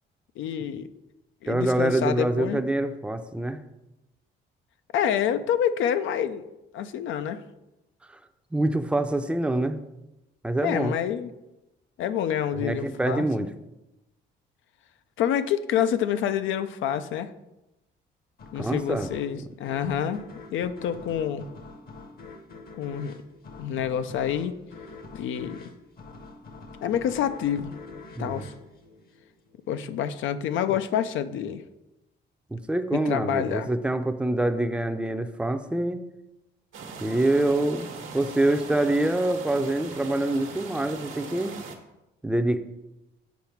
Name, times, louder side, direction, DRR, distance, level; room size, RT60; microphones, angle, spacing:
voice 1, 0.4-0.9 1.4-2.6 4.9-7.4 10.6-11.3 12.0-13.3 15.2-17.3 18.5-21.5 22.8-23.2 23.6-24.5 25.1-25.7 26.8-27.8 28.2-28.5 29.7-31.6 32.9-33.7, left 9 dB, 80° left, 12 dB, 0.5 m, -27 dB
voice 2, 1.4-3.6 8.5-9.8 10.4-11.0 12.5-13.5 18.6-19.1 28.2-28.5 32.5-36.0 37.0-37.9 38.1-41.5 42.2-42.6, right 1 dB, 5° right, 8 dB, 0.5 m, -25 dB
sound 1, 18.4-29.7, left 3 dB, 50° left, 0.9 m, -45 dB
sound 2, 36.7-41.7, right 5 dB, 80° right, 1.2 m, -40 dB
7.2 x 4.8 x 4.5 m, 0.96 s
cardioid pair, 90°, 20 cm